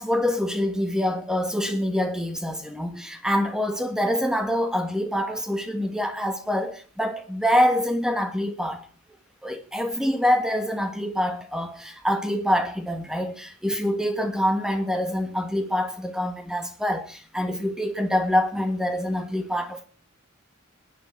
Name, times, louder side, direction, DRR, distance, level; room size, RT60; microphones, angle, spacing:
voice 1, 0.0-8.9 9.4-19.8, equal, 5° right, 1.5 m, -25 dB
21.5 x 10.0 x 4.5 m
head